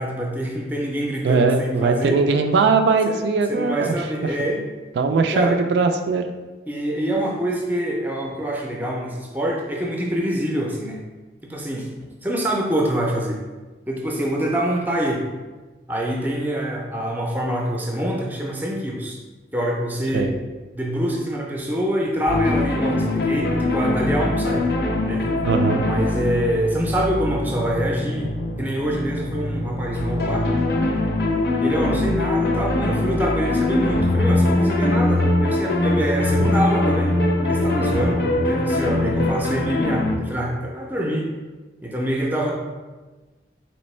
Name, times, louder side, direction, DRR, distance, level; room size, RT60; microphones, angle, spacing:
voice 1, 0.0-2.2 3.1-3.2 3.5-4.6 5.3-5.6 6.7-11.0 11.4-11.9 12.2-13.4 13.9-15.3 15.9-19.2 19.5-20.3 20.7-24.6 25.1-25.3 25.8-28.3 28.6-30.5 31.6-37.2 37.4-41.3 41.8-42.5, equal, 10° right, -1 dB, 0.5 m, -25 dB
voice 2, 1.2-4.0 4.2-4.3 5.0-6.3 20.1-20.3 25.5-25.8 36.4-36.5, right 4 dB, 75° right, 6 dB, 0.3 m, -20 dB
sound 1, 22.3-40.2, left 2 dB, 65° left, 0.6 m, -22 dB
4.2 x 3.0 x 3.1 m, 1.3 s
head